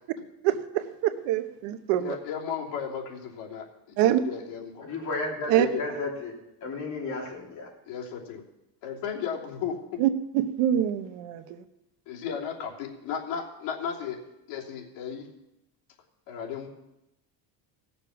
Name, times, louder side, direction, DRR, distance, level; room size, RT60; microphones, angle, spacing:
voice 1, 0.4-2.2 4.0-4.2 5.5-5.7 10.0-11.6, right 12 dB, 75° right, 10 dB, 1.1 m, -25 dB
voice 2, 2.0-4.9 5.4-5.8 7.9-8.4 8.8-10.0 12.1-14.2 14.5-15.3 16.3-16.7, left 7 dB, 75° left, -3 dB, 3.1 m, -35 dB
voice 3, 4.8-6.4 6.6-7.7, left 3 dB, 40° left, -1 dB, 3.2 m, -33 dB
17.5 x 6.9 x 5.9 m, 0.90 s
cardioid pair, 145°, 44 cm